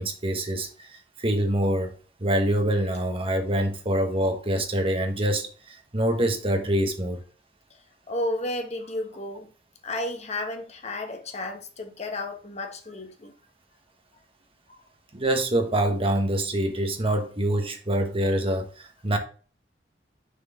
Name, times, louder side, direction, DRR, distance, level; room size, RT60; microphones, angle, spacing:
voice 1, 0.0-1.9 2.2-7.2 15.1-19.2, right 1 dB, 30° right, 1.2 m, -25 dB
voice 2, 8.1-9.5 9.8-13.3 14.7-14.8, left 1 dB, 35° left, 1.3 m, -32 dB
6.7 x 4.8 x 3.6 m
head